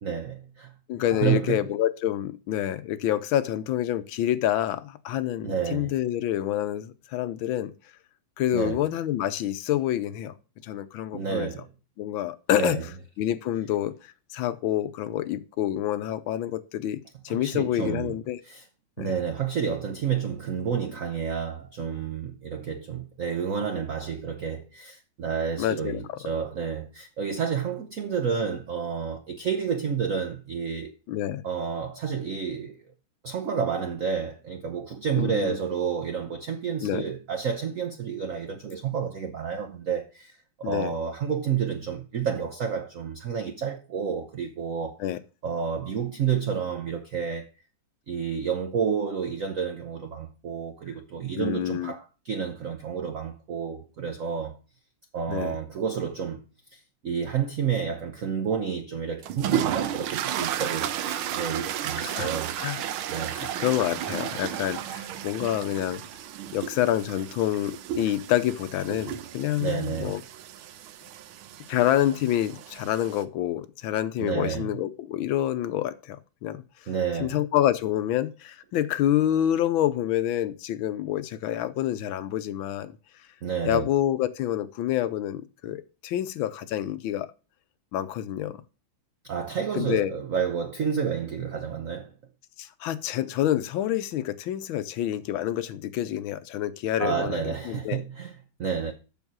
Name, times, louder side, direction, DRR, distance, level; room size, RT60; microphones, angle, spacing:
voice 1, 0.0-0.8 1.1-1.7 5.4-5.9 8.5-8.8 11.1-11.7 12.5-12.8 17.3-18.6 19.0-30.9 31.4-32.8 33.2-45.0 45.4-47.5 48.1-54.6 55.1-56.4 56.7-62.5 63.1-63.5 69.6-70.2 74.2-74.8 76.9-77.5 83.4-83.9 89.2-92.1 97.0-98.9, right 7 dB, 60° right, 0.8 m, -30 dB
voice 2, 0.9-7.7 8.4-10.3 10.6-11.5 12.0-12.8 13.2-18.4 19.0-19.1 25.6-26.2 31.1-31.4 35.2-35.6 36.8-37.0 40.6-40.9 45.0-45.2 51.4-51.9 55.3-55.6 62.0-62.3 62.6-62.8 63.1-66.0 66.5-70.2 71.7-76.6 77.2-82.9 83.6-87.3 87.9-88.6 89.7-90.1 92.6-98.0, left 12 dB, 75° left, 1.4 m, -27 dB
sound 1, 59.2-73.2, right 11 dB, 80° right, 1.5 m, -33 dB
7.2 x 6.4 x 6.0 m
omnidirectional pair, 2.3 m